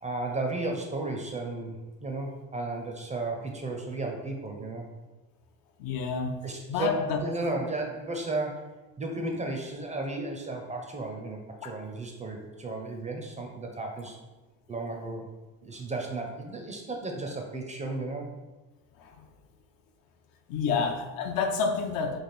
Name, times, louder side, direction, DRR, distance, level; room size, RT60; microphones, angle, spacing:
voice 1, 0.0-4.8 6.4-8.6 9.0-14.2 14.7-15.3 15.6-18.3 20.7-20.9, right 2 dB, 20° right, 1 dB, 0.4 m, -34 dB
voice 2, 5.8-6.4 6.7-7.2 11.6-11.7 19.0-19.3 20.5-22.2, left 5 dB, 65° left, 5 dB, 0.6 m, -29 dB
3.3 x 2.4 x 4.0 m, 1.1 s
cardioid pair, 120°, 38 cm